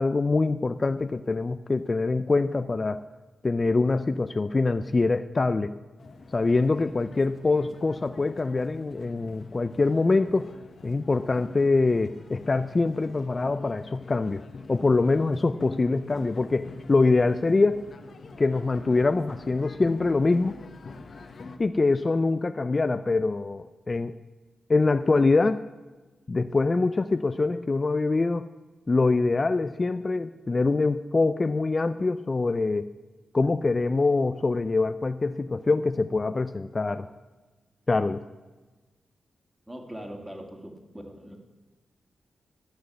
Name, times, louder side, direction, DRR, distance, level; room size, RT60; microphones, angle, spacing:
voice 1, 0.0-3.0 3.4-5.8 6.3-10.5 10.8-14.4 14.7-17.8 18.4-20.5 21.6-24.1 24.7-25.6 26.3-28.4 28.9-32.9 33.3-37.1 37.9-38.2, left 3 dB, 40° left, 11 dB, 0.4 m, -24 dB
sound 1, 6.0-21.6, left 3 dB, 60° left, 1.1 m, -45 dB
voice 2, 39.7-41.4, equal, 15° right, 2 dB, 2.5 m, -41 dB
13.5 x 6.4 x 7.8 m, 1.2 s
cardioid pair, 55°, 0 cm